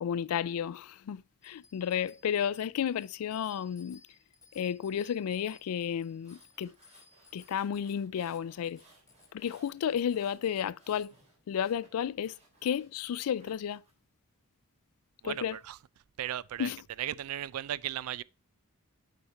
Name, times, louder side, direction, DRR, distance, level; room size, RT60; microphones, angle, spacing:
voice 1, 0.0-4.0 4.6-6.7 7.3-8.8 9.3-11.1 11.5-12.4 12.6-13.8 15.2-15.5 16.6-16.8, left 8 dB, 75° left, 0.3 m, -32 dB
Bicycle bell, 1.4-11.1, left 5 dB, 15° left, 0.9 m, -61 dB
sound 1, 6.0-13.9, right 2 dB, 30° right, 3.1 m, -63 dB
voice 2, 15.2-15.8 16.2-16.7 17.0-18.2, right 11 dB, 75° right, 0.3 m, -36 dB
7.1 x 5.1 x 4.2 m
head